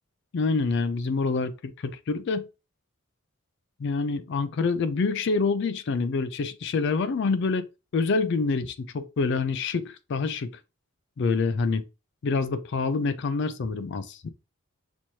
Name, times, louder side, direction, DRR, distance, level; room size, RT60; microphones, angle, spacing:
voice 1, 0.3-2.5 3.8-10.6 11.2-11.8 12.2-14.2, left 4 dB, 55° left, 0.4 m, -26 dB
6.1 x 2.9 x 2.7 m
head